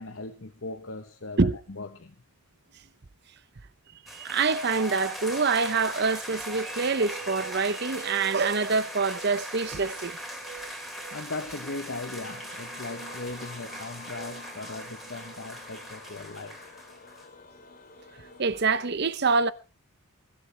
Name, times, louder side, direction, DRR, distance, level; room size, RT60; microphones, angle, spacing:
voice 1, 0.0-2.1 11.1-16.6, left 3 dB, 60° left, 1.0 m, -38 dB
sound 1, 4.1-17.3, equal, ahead, 2.9 m, -40 dB
voice 2, 4.1-10.2 18.4-19.5, right 4 dB, 50° right, 0.7 m, -25 dB
sound 2, 6.5-15.8, right 7 dB, 85° right, 6.4 m, -48 dB
sound 3, 12.2-18.9, left 5 dB, 40° left, 2.7 m, -49 dB
22.5 x 14.0 x 3.3 m
head